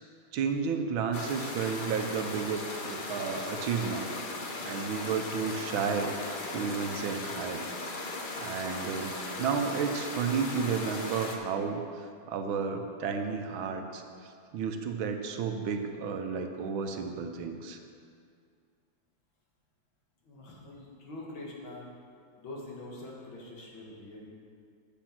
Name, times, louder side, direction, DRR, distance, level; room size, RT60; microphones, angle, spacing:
voice 1, 0.3-4.1 4.6-6.1 6.5-7.7 8.4-9.1 9.4-17.8, right 6 dB, 85° right, 5 dB, 1.6 m, -32 dB
sound 1, 1.1-11.4, left 2 dB, 60° left, 0.5 m, -38 dB
voice 2, 20.2-21.9 22.4-24.3, left 2 dB, 85° left, -3 dB, 2.5 m, -44 dB
8.7 x 7.1 x 5.9 m, 2.3 s
omnidirectional pair, 2.1 m